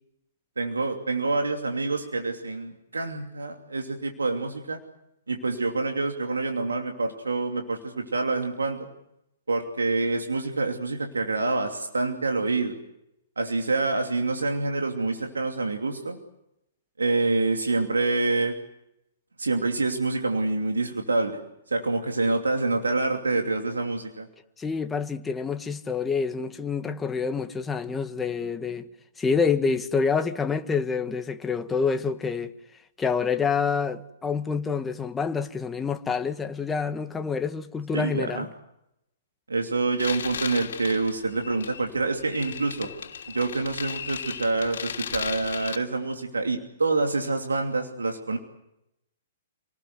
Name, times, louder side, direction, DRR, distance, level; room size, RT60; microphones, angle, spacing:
voice 1, 0.6-4.8 5.3-8.9 9.5-12.8 13.4-16.2 17.0-18.5 19.4-21.4 21.7-24.3 37.9-38.5 39.5-42.9 43.3-48.4, right 3 dB, 85° right, 2.8 m, -27 dB
voice 2, 24.6-28.9 29.2-32.5 33.0-38.5, left 5 dB, 15° left, 1.7 m, -27 dB
sound 1, 40.0-45.8, left 7 dB, 70° left, 3.0 m, -36 dB
29.0 x 19.5 x 8.1 m
hypercardioid pair, 120°, 0 cm